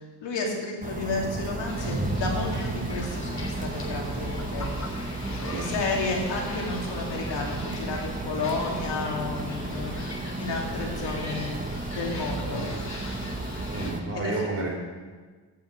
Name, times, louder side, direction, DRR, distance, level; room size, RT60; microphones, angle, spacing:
voice 1, 0.2-4.9 5.4-11.6 11.9-12.6 14.1-14.5, left 3 dB, 75° left, -1 dB, 2.7 m, -32 dB
sound 1, 0.8-14.0, right 2 dB, 20° right, 1.1 m, -33 dB
sound 2, 1.7-13.9, left 2 dB, 40° left, 3.1 m, -39 dB
voice 2, 13.7-14.7, right 2 dB, 35° right, -1 dB, 4.1 m, -30 dB
9.2 x 7.2 x 8.4 m, 1.4 s
cardioid pair, 80°, 43 cm